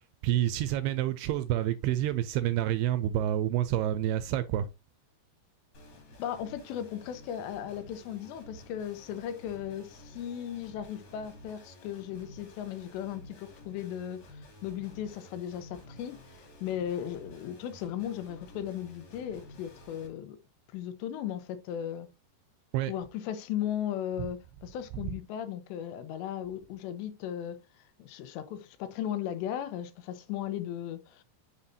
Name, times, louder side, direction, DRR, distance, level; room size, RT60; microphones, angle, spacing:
voice 1, 0.2-4.7 22.7-22.9, right 12 dB, 85° right, 2.4 m, -28 dB
sound 1, 5.7-20.1, left 1 dB, 45° left, 3.5 m, -52 dB
voice 2, 6.2-20.4 20.7-22.1 22.9-27.6 28.0-31.2, left 10 dB, 85° left, 3.1 m, -36 dB
7.4 x 6.6 x 2.7 m
omnidirectional pair, 5.0 m